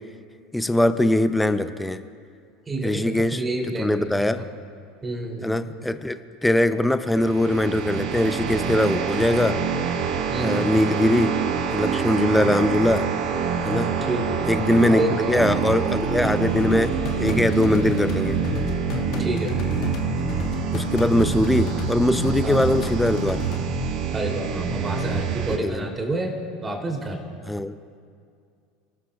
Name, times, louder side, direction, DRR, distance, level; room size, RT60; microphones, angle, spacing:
voice 1, 0.5-2.0 2.8-3.4 3.8-4.5 5.4-9.6 10.4-11.4 11.7-13.1 13.6-14.0 14.5-18.4 20.7-23.4 25.6-25.9 27.5-27.8, left 1 dB, 5° left, 11 dB, 0.6 m, -21 dB
voice 2, 2.7-4.5 5.0-5.6 10.3-10.8 14.1-14.2 14.9-15.5 19.2-19.5 22.4-22.7 24.1-26.3 26.6-27.2, right 1 dB, 20° right, 0 dB, 3.2 m, -29 dB
sound 1, 7.1-25.6, right 6 dB, 60° right, 1.3 m, -26 dB
sound 2, 16.2-23.6, left 3 dB, 55° left, 1.3 m, -31 dB
28.0 x 13.0 x 2.4 m, 2.3 s
hypercardioid pair, 85°, 0 cm